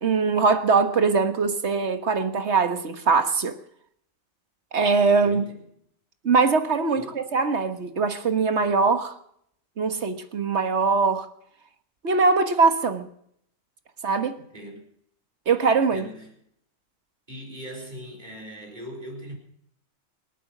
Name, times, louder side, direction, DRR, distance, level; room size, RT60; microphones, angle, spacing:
voice 1, 0.0-3.5 4.7-5.5 6.2-9.1 9.8-11.3 12.0-13.1 14.0-14.4 15.5-16.1, right 4 dB, 60° right, 1.7 m, -22 dB
voice 2, 5.2-5.6 6.9-7.2 14.5-14.8 15.9-16.3 17.3-19.4, equal, 35° right, 4.8 m, -40 dB
26.0 x 9.0 x 6.2 m
omnidirectional pair, 1.3 m